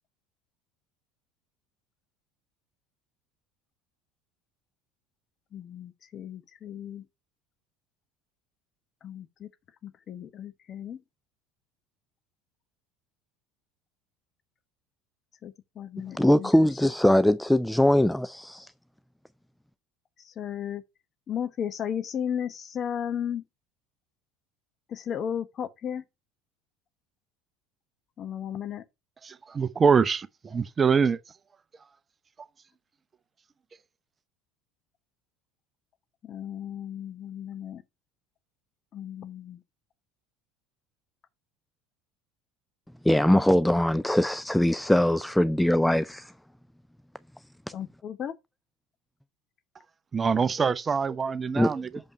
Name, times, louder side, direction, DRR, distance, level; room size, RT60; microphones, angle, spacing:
voice 1, 5.5-7.0 9.0-9.5 9.8-11.0 15.4-16.5 20.2-20.8 21.3-23.4 24.9-26.0 28.2-28.8 36.2-37.8 38.9-39.6 47.7-48.3, left 9 dB, 45° left, 1.0 m, -35 dB
voice 2, 16.1-18.7 43.0-46.3 51.6-51.7, left 1 dB, 5° left, 0.3 m, -22 dB
voice 3, 29.2-31.2 50.1-51.9, right 6 dB, 30° right, 0.6 m, -24 dB
6.6 x 5.4 x 4.3 m
hypercardioid pair, 75°, 0 cm